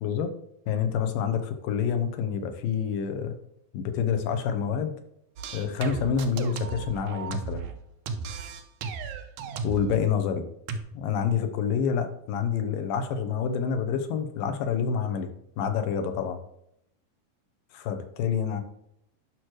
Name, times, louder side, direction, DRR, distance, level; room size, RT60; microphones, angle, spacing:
voice 1, 0.0-0.3 0.7-3.4 3.7-4.9 5.5-7.6 9.6-10.4 10.9-15.3 15.6-16.4 17.7-18.6, left 7 dB, 75° left, 7 dB, 2.5 m, -27 dB
sound 1, 5.4-7.7 8.1-10.0 10.7-10.8, right 5 dB, 85° right, 1.6 m, -34 dB
11.0 x 6.1 x 3.1 m, 0.78 s
omnidirectional pair, 4.3 m